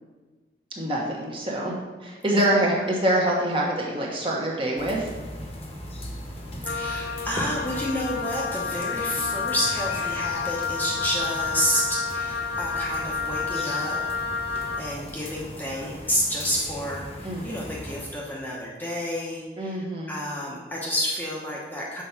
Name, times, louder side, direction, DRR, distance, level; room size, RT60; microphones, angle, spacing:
voice 1, 0.8-1.7 2.0-5.1 17.2-17.5 19.6-20.1, right 1 dB, 30° right, -3 dB, 1.2 m, -25 dB
voice 2, 2.3-2.6 6.6-14.0 14.8-22.0, equal, 10° left, -4 dB, 0.9 m, -30 dB
sound 1, 4.8-18.1, equal, 35° left, 1.1 m, -39 dB
Wind instrument woodwind instrument, 6.6-14.9, left 5 dB, 55° left, 0.7 m, -30 dB
6.3 x 4.5 x 5.8 m, 1.3 s
head